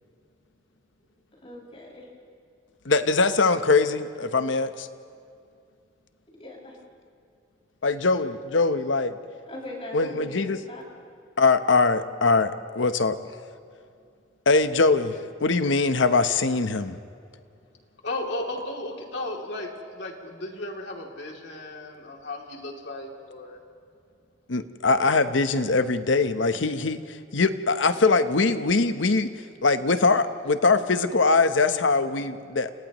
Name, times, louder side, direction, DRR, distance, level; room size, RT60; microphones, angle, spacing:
voice 1, 1.4-2.1 6.4-6.8 9.5-10.8, left 2 dB, 30° left, -3 dB, 6.5 m, -39 dB
voice 2, 2.8-4.9 7.8-9.2 9.9-10.6 11.4-13.2 14.5-17.0 24.5-29.3 29.6-32.7, left 3 dB, 85° left, 10 dB, 1.0 m, -22 dB
voice 3, 18.0-23.6, left 2 dB, 65° left, 0 dB, 3.0 m, -35 dB
30.0 x 29.5 x 3.1 m, 2.4 s
head